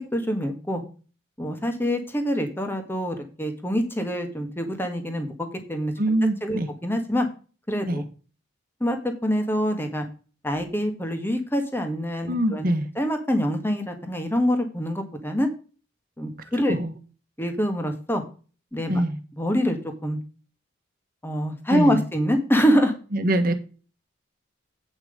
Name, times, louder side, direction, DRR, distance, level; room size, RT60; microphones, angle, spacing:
voice 1, 0.1-0.8 1.4-5.3 5.7-7.3 7.7-8.0 8.8-10.0 10.4-12.7 12.9-15.5 16.2-16.8 17.4-18.2 18.7-19.0 19.4-20.2 21.2-22.9, equal, 10° left, 1.6 m, -25 dB
voice 2, 6.0-6.7 7.9-8.0 12.3-12.9 16.7-16.9 18.9-19.2 21.7-22.0 23.1-23.5, right 1 dB, 45° right, 1.4 m, -23 dB
8.9 x 5.9 x 5.1 m
head